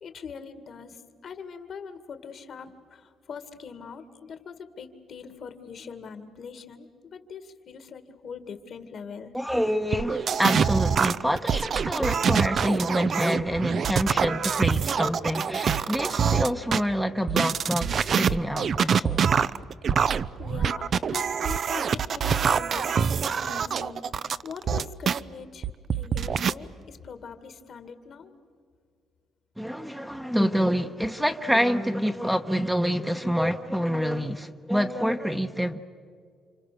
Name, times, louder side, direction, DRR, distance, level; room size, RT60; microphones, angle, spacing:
voice 1, 0.0-9.3 20.4-24.0 24.4-25.7 25.9-28.3, left 6 dB, 60° left, 2.1 m, -42 dB
voice 2, 9.3-19.2 29.6-35.8, equal, 5° right, 1.1 m, -27 dB
sound 1, 9.9-16.8 17.3-25.2 25.6-26.5, right 7 dB, 55° right, 0.6 m, -25 dB
29.5 x 26.5 x 6.7 m
cardioid pair, 90°, 0 cm